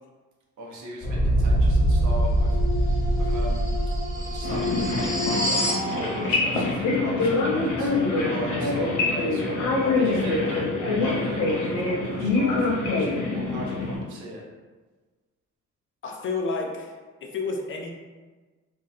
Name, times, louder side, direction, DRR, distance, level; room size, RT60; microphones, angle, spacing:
voice 1, 0.6-3.7 4.1-9.7 10.0-14.4, right 1 dB, 75° right, -3 dB, 0.8 m, -38 dB
sound 1, 1.0-5.9, equal, 10° left, 0.9 m, -23 dB
sound 2, 4.4-14.0, left 3 dB, 85° left, 0.6 m, -25 dB
voice 2, 16.0-17.9, left 3 dB, 40° left, 1 dB, 0.4 m, -31 dB
2.6 x 2.1 x 2.4 m, 1.3 s
cardioid pair, 90°, 30 cm